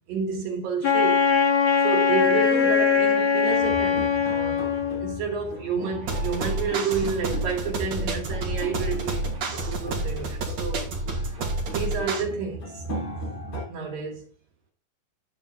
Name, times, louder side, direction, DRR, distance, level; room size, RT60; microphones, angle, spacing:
voice 1, 0.1-1.3 1.8-4.6 5.0-10.8 11.7-12.8 13.7-14.3, right 5 dB, 75° right, 4.0 m, -30 dB
Wind instrument woodwind instrument, 0.8-5.2, left 6 dB, 85° left, 0.8 m, -21 dB
sound 1, 3.5-13.7, right 1 dB, 40° left, 3.9 m, -37 dB
sound 2, 6.0-12.2, right 2 dB, 50° right, 3.8 m, -30 dB
11.5 x 5.1 x 3.9 m
omnidirectional pair, 4.1 m